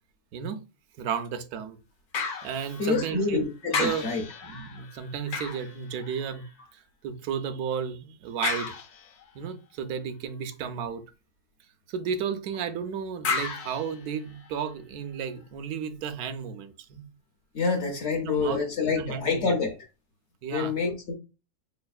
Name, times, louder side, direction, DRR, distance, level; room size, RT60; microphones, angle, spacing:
voice 1, 0.3-0.6 1.0-1.8 2.4-3.4 3.7-6.4 6.7-8.7 9.3-11.0 11.9-17.0 18.1-19.5 20.4-20.7, right 7 dB, 80° right, 1.1 m, -33 dB
sound 1, 2.1-3.4 3.7-6.5 8.4-9.4 13.2-14.7 15.3-15.4, left 5 dB, 80° left, 1.2 m, -34 dB
voice 2, 2.8-4.2 17.5-19.8 20.5-21.1, left 4 dB, 60° left, 0.8 m, -27 dB
4.3 x 3.2 x 2.3 m
omnidirectional pair, 1.6 m